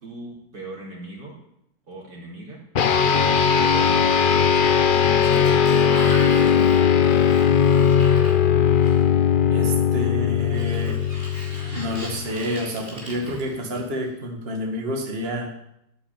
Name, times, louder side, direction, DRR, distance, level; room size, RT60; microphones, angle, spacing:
voice 1, 0.0-1.3 1.9-2.6 3.5-3.9 5.1-7.3, right 2 dB, 85° right, -3 dB, 4.8 m, -38 dB
sound 1, 2.8-12.5, left 7 dB, 55° left, 0.6 m, -19 dB
Sliding door, 4.6-9.2 10.4-14.1, right 1 dB, 10° right, 6.0 m, -39 dB
voice 2, 9.5-11.0 11.6-15.5, equal, 35° right, 1 dB, 2.2 m, -29 dB
14.5 x 8.8 x 9.0 m, 0.80 s
omnidirectional pair, 1.8 m